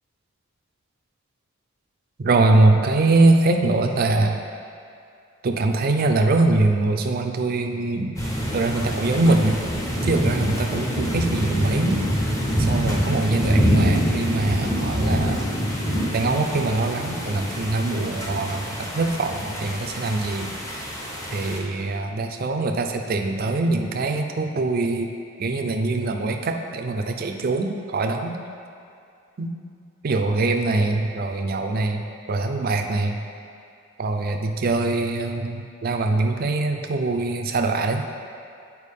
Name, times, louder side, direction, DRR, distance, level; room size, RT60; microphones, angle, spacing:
voice 1, 2.2-4.4 5.4-8.2 8.5-9.6 10.1-12.0 12.6-15.5 16.1-20.9 21.3-25.1 25.4-28.4 29.4-29.5 30.0-32.0 32.3-33.2 34.0-38.0, right 2 dB, 45° right, 4 dB, 0.4 m, -23 dB
sound 1, 8.2-21.6, equal, 15° left, 0.7 m, -25 dB
8.2 x 4.6 x 3.5 m, 2.5 s
head